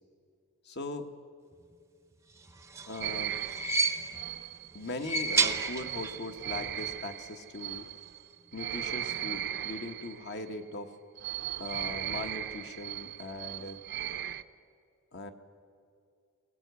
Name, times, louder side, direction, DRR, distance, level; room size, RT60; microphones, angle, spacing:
voice 1, 0.6-1.1 2.9-3.4 4.7-7.9 8.5-10.9 11.6-13.8 15.1-15.3, left 2 dB, 50° left, 7 dB, 1.3 m, -39 dB
sound 1, 2.5-4.4 4.9-6.3 6.5-6.6 7.8-7.9, right 4 dB, 15° right, 0.7 m, -31 dB
sound 2, 3.0-10.5 11.2-14.4, right 11 dB, 50° right, 0.6 m, -38 dB
21.5 x 18.0 x 8.2 m, 2.4 s
head